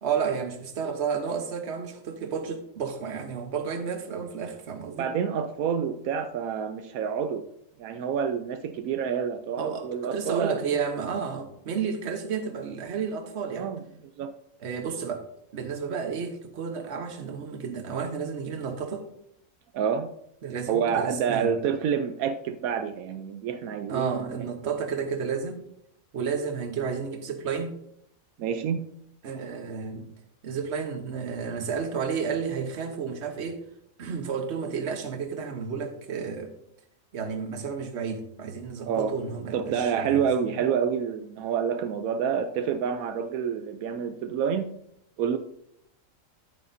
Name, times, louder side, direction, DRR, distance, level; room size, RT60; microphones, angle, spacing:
voice 1, 0.0-5.1 9.6-13.7 14.6-15.3 15.5-19.1 20.4-21.5 23.9-25.6 26.1-27.8 29.2-30.1 30.4-33.6 34.0-36.5 37.1-40.3, right 6 dB, 55° right, 6 dB, 1.2 m, -31 dB
voice 2, 5.0-7.5 7.8-10.6 13.6-14.3 19.7-20.1 20.7-24.5 28.4-28.9 38.9-39.1 39.5-44.7 45.2-45.4, right 7 dB, 85° right, 9 dB, 1.0 m, -28 dB
9.8 x 9.1 x 2.7 m, 0.73 s
omnidirectional pair, 1.5 m